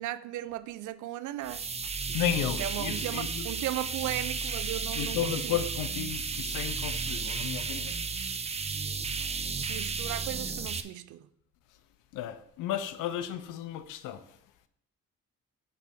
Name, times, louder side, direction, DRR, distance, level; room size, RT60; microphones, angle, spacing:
voice 1, 0.0-1.8 2.1-5.6 9.1-11.2, right 14 dB, 80° right, 0.5 m, -37 dB
sound 1, 1.4-10.8, right 4 dB, 20° right, 0.5 m, -33 dB
voice 2, 2.1-3.5 4.9-8.0 12.1-14.4, left 11 dB, 90° left, 0.7 m, -33 dB
8.3 x 3.3 x 5.8 m
cardioid pair, 90°, 30 cm